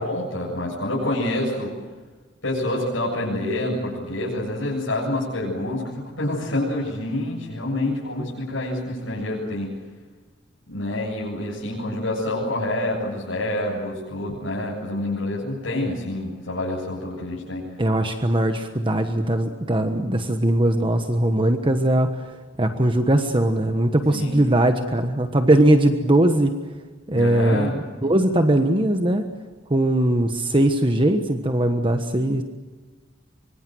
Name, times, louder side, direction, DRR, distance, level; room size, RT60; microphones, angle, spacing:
voice 1, 0.0-1.7 2.4-9.7 10.7-17.7 24.1-24.4 27.1-27.8, left 1 dB, 85° left, -5 dB, 7.6 m, -27 dB
voice 2, 17.8-22.1 22.6-26.5 27.1-29.2 29.7-32.4, right 1 dB, 25° right, 6 dB, 1.3 m, -20 dB
25.0 x 24.5 x 7.8 m, 1.3 s
head